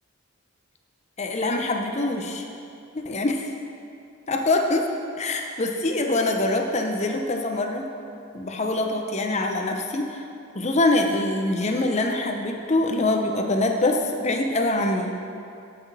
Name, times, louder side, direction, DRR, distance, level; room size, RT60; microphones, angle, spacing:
voice 1, 1.2-2.4 2.9-3.4 4.3-4.9 5.2-7.9 8.3-10.2 10.5-15.1, left 2 dB, 30° left, 3 dB, 0.8 m, -24 dB
15.5 x 6.1 x 4.1 m, 2.6 s
head